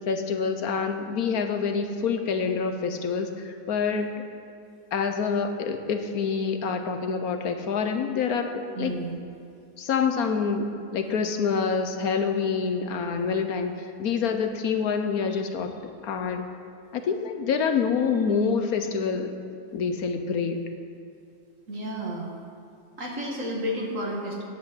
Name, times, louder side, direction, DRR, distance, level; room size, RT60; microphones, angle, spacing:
voice 1, 0.1-4.1 4.9-8.9 9.8-15.7 16.0-16.5 16.9-19.3 19.7-20.6, left 5 dB, 70° left, 6 dB, 1.3 m, -26 dB
voice 2, 8.7-9.2 21.7-22.3 23.0-24.4, equal, 55° right, -2 dB, 2.3 m, -31 dB
9.8 x 8.4 x 7.7 m, 2.6 s
omnidirectional pair, 1.7 m